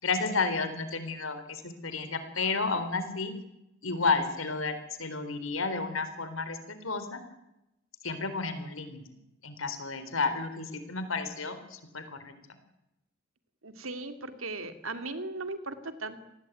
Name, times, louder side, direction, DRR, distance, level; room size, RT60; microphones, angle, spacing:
voice 1, 0.0-3.3 3.8-7.2 8.0-9.0 9.4-12.3, left 4 dB, 80° left, 10 dB, 4.0 m, -32 dB
voice 2, 13.6-16.2, right 3 dB, 85° right, 9 dB, 2.7 m, -37 dB
27.5 x 19.0 x 9.3 m, 0.91 s
head